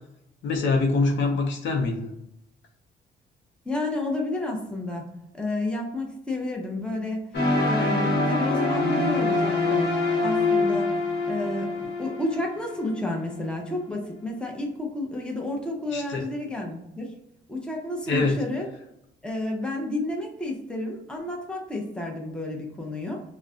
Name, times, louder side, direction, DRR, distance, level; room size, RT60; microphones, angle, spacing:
voice 1, 0.4-2.1 15.9-16.2 18.1-18.4, left 3 dB, 70° left, 2 dB, 0.6 m, -24 dB
voice 2, 3.6-5.1 5.3-7.2 7.7-9.9 10.2-10.9 11.2-17.1 17.5-18.7 19.2-23.2, left 2 dB, 5° left, 0 dB, 0.7 m, -31 dB
sound 1, 7.3-13.3, left 2 dB, 55° left, 1.0 m, -25 dB
2.3 x 2.1 x 3.6 m, 0.82 s
cardioid pair, 90°, 20 cm